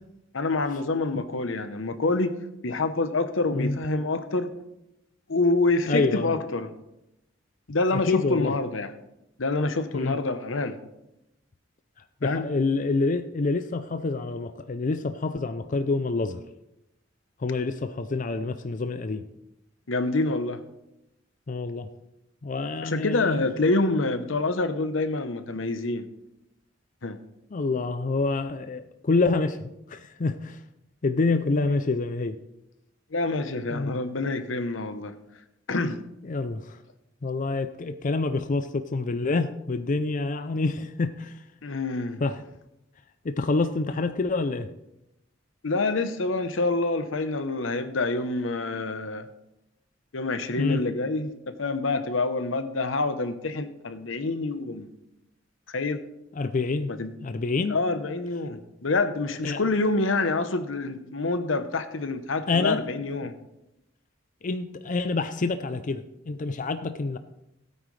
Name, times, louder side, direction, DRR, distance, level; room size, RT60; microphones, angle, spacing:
voice 1, 0.3-2.4 2.6-4.5 5.3-6.7 7.7-8.9 9.4-10.8 12.2-12.5 19.9-20.6 22.8-26.1 27.0-27.2 33.1-35.1 35.7-36.0 41.6-42.2 45.6-49.3 50.1-54.9 55.7-56.0 56.9-57.1 57.7-63.3, left 3 dB, 85° left, 10 dB, 0.9 m, -27 dB
voice 2, 5.9-6.3 8.1-8.5 9.9-10.2 12.2-16.4 17.4-19.3 21.5-21.9 22.4-23.5 27.5-30.6 31.0-32.4 33.7-33.9 36.2-36.8 37.2-41.4 42.2-42.4 43.2-44.7 50.6-50.8 56.3-56.9 57.2-57.8 59.4-59.6 62.5-62.8 64.4-67.2, left 3 dB, 40° left, 10 dB, 0.5 m, -27 dB
16.5 x 9.0 x 3.3 m, 0.88 s
head